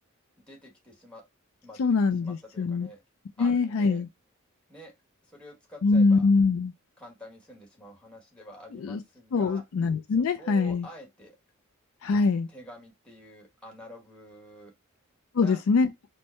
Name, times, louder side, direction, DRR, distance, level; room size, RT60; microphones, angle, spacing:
voice 1, 0.5-1.2 1.6-1.9 2.2-3.0 3.4-4.0 4.7-4.9 5.3-6.3 7.0-9.6 10.2-11.4 12.5-14.7 15.4-15.6, right 1 dB, 5° left, 1.2 m, -47 dB
voice 2, 1.8-2.9 3.4-4.1 5.8-6.7 8.8-9.0 9.3-10.9 12.0-12.5 15.3-15.9, left 4 dB, 70° left, 0.4 m, -23 dB
4.5 x 2.1 x 4.3 m
head